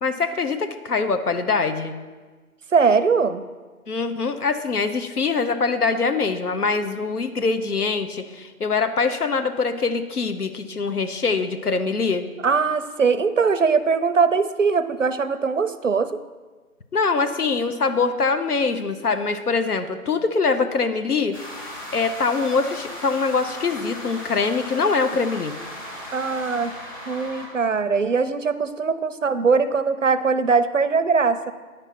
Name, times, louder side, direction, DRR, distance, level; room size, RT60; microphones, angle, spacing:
voice 1, 0.0-1.9 3.9-12.3 16.9-25.6, left 4 dB, 80° left, 8 dB, 0.9 m, -23 dB
voice 2, 2.7-3.4 12.4-16.2 26.1-26.7 27.1-31.5, right 5 dB, 60° right, 13 dB, 0.5 m, -21 dB
sound 1, 21.3-27.5, left 1 dB, 15° left, 1.2 m, -37 dB
9.7 x 5.3 x 6.0 m, 1.4 s
figure-of-eight pair, 160°, 45 cm